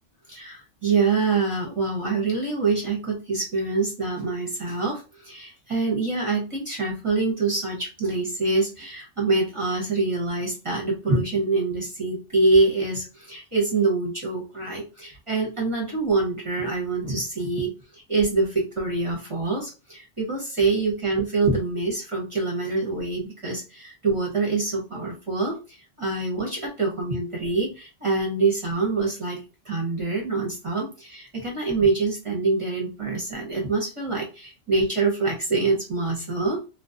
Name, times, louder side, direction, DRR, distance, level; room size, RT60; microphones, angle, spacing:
voice 1, 0.3-36.6, right 3 dB, 30° right, -2 dB, 0.7 m, -25 dB
2.3 x 2.1 x 2.5 m, 0.31 s
omnidirectional pair, 1.3 m